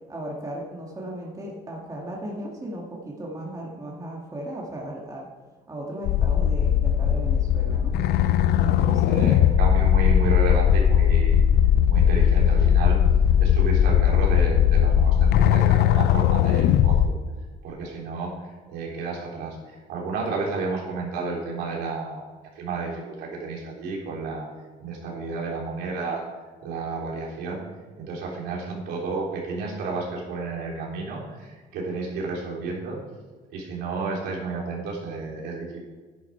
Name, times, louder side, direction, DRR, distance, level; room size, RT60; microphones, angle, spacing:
voice 1, 0.1-5.3 5.7-7.9 8.6-9.6, right 1 dB, 20° right, -3 dB, 2.1 m, -36 dB
sound 1, 6.1-17.1, left 9 dB, 70° left, 0.6 m, -19 dB
voice 2, 8.7-11.4 11.9-13.0 13.4-17.2 17.6-22.2 22.6-24.5 24.8-26.2 26.6-27.6 28.0-33.0 33.5-35.8, right 4 dB, 90° right, -3 dB, 3.7 m, -31 dB
11.0 x 10.5 x 4.5 m, 1.4 s
cardioid pair, 110°, 17 cm